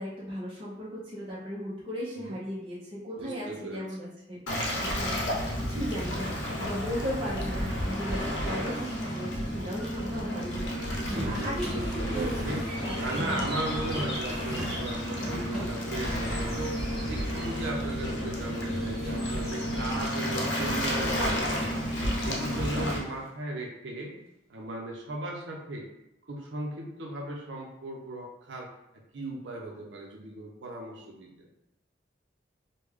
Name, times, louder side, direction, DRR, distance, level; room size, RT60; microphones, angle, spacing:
voice 1, 0.0-12.3 12.8-13.5, equal, 30° right, -8 dB, 0.7 m, -37 dB
voice 2, 3.2-3.9 11.0-12.6 13.0-21.9 22.2-24.2 24.5-25.9 26.3-28.7 29.1-31.3, right 1 dB, 85° right, -1 dB, 0.6 m, -37 dB
Waves surf, 4.5-23.0, equal, 85° left, 0.7 m, -31 dB
sound 1, 10.9-18.0 18.4-20.0 20.7-23.3, equal, 5° left, 0.9 m, -42 dB
sound 2, 12.6-21.0, equal, 30° left, 1.0 m, -44 dB
3.2 x 2.2 x 3.5 m, 0.87 s
head